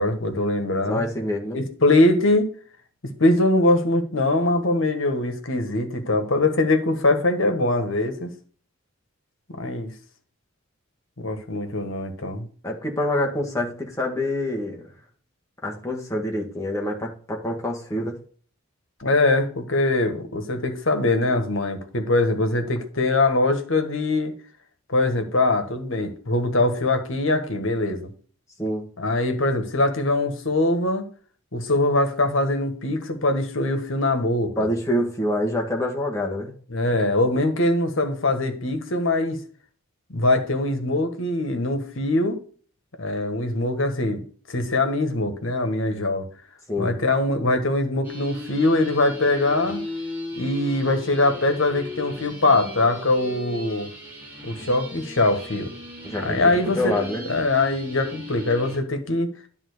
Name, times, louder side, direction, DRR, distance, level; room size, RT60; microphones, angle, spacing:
voice 1, 0.0-1.0 1.5-2.5 3.0-8.3 9.5-9.9 11.2-12.4 19.0-24.3 24.9-28.1 29.0-31.0 31.5-34.5 36.7-39.4 40.1-42.4 43.0-44.2 44.5-46.3 46.8-49.8 50.4-53.9 54.4-55.7 56.2-56.9 57.2-59.3, left 2 dB, 65° left, 1.5 m, -22 dB
voice 2, 0.9-1.6 12.6-14.8 15.6-18.2 28.6-28.9 34.6-36.5 46.7-46.9 56.0-56.4 56.8-57.3, left 1 dB, 15° left, 1.6 m, -26 dB
sound 1, 48.0-58.8, left 2 dB, 10° right, 2.2 m, -37 dB
10.5 x 3.8 x 6.6 m
head